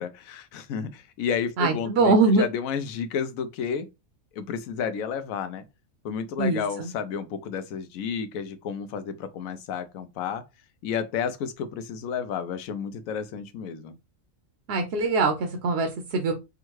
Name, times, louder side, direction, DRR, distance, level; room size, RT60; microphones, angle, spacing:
voice 1, 0.0-3.9 4.3-5.6 6.0-10.4 10.8-13.9, left 7 dB, 90° left, 1.0 m, -31 dB
voice 2, 1.6-2.5 6.4-6.9 14.7-16.3, right 3 dB, 60° right, 0.7 m, -23 dB
3.6 x 2.2 x 3.0 m
omnidirectional pair, 1.4 m